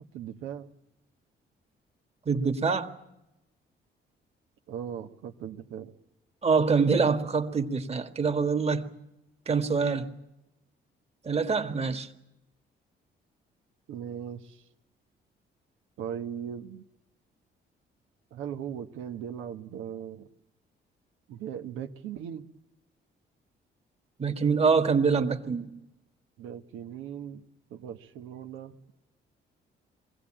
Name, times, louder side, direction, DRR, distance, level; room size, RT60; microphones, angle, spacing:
voice 1, 0.1-0.7 4.7-5.9 13.9-14.6 16.0-16.8 18.3-20.3 21.3-22.4 26.4-27.4 27.7-28.8, right 9 dB, 90° right, 5 dB, 1.3 m, -38 dB
voice 2, 2.3-2.9 6.4-9.0 9.5-10.1 11.2-12.1 24.2-25.7, right 5 dB, 30° right, 6 dB, 1.8 m, -25 dB
22.5 x 16.5 x 8.8 m, 0.91 s
cardioid pair, 90°, 20 cm